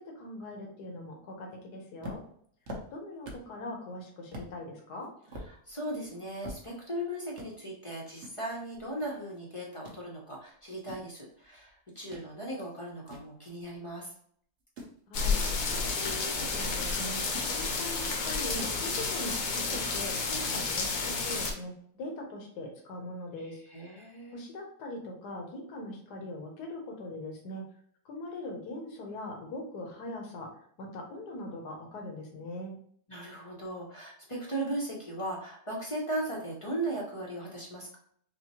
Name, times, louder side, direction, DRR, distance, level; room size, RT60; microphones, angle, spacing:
voice 1, 0.0-2.2 2.9-5.1 15.1-17.2 17.5-23.6 23.9-27.6 28.0-30.5 30.8-32.7, left 1 dB, 80° left, 1 dB, 1.5 m, -41 dB
sound 1, 2.0-3.6 3.9-4.0 4.3-4.5 5.0-7.0 7.3-7.5 8.2-9.4 9.6-10.0 10.6-12.3 12.7-14.0 14.6-15.0 15.8-16.3 17.0-17.9 18.3-18.8 19.2-19.3 19.5-19.9, equal, 50° right, 1.1 m, -45 dB
voice 2, 5.5-14.1 23.7-24.4 33.1-38.0, right 1 dB, 30° left, -3 dB, 0.6 m, -37 dB
sound 2, 15.1-21.5, left 4 dB, 65° left, 1.1 m, -31 dB
5.8 x 2.1 x 2.9 m, 0.63 s
omnidirectional pair, 1.7 m